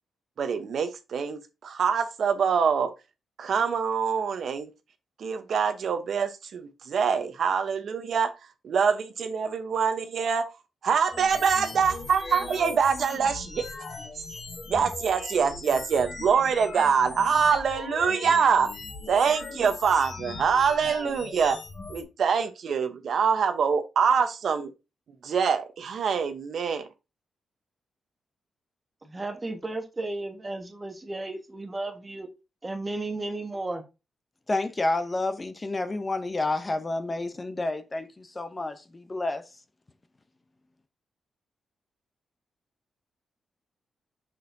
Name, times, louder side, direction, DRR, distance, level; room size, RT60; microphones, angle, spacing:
voice 1, 0.4-2.9 3.4-4.7 5.2-10.5 10.8-13.7 14.1-14.2 14.7-18.7 19.1-21.6 21.9-24.7 25.2-26.9, right 6 dB, 65° right, 0.8 m, -25 dB
sound 1, 11.1-22.0, left 3 dB, 45° left, 1.4 m, -39 dB
voice 2, 29.0-32.3 32.6-33.8, right 2 dB, 20° right, 1.3 m, -34 dB
voice 3, 34.5-39.4, left 2 dB, 25° left, 0.6 m, -29 dB
6.8 x 6.2 x 2.6 m
cardioid pair, 120°, 0 cm